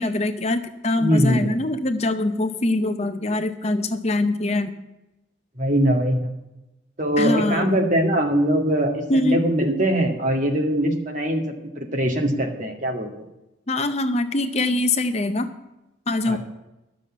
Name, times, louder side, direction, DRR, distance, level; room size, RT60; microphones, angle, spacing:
voice 1, 0.0-4.7 7.2-7.8 9.1-9.4 13.7-15.5 16.1-16.4, left 2 dB, 35° left, 9 dB, 0.6 m, -23 dB
voice 2, 1.0-1.5 5.6-6.2 7.0-11.4 11.8-13.1 16.3-16.4, equal, 40° right, 2 dB, 1.9 m, -22 dB
12.0 x 6.9 x 8.5 m, 0.95 s
head